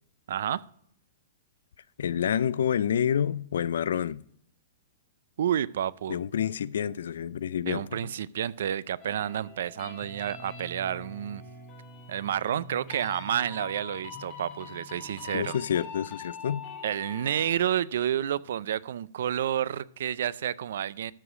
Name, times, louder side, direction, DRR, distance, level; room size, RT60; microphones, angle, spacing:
voice 1, 0.3-0.6 5.4-6.2 7.7-11.4 12.1-15.6 16.8-21.1, right 10 dB, 60° right, 0.3 m, -30 dB
voice 2, 2.0-4.2 6.1-7.8 15.3-16.6, left 9 dB, 75° left, 0.3 m, -28 dB
sound 1, 9.0-17.5, left 3 dB, 20° left, 2.1 m, -44 dB
13.0 x 4.9 x 4.9 m
hypercardioid pair, 175°, 0 cm